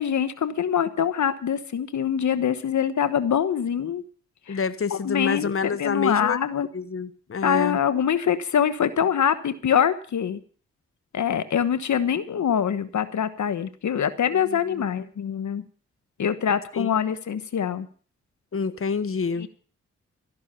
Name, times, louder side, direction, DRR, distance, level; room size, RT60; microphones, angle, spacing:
voice 1, 0.0-4.0 4.5-4.6 4.9-6.7 7.4-10.4 11.1-15.6 16.2-17.9 19.4-19.5, left 8 dB, 70° left, 13 dB, 1.2 m, -24 dB
voice 2, 4.5-6.4 6.7-7.8 14.3-14.9 16.7-16.9 18.5-19.5, left 5 dB, 45° left, 14 dB, 1.2 m, -28 dB
15.0 x 12.0 x 5.6 m, 0.41 s
supercardioid pair, 45°, 30 cm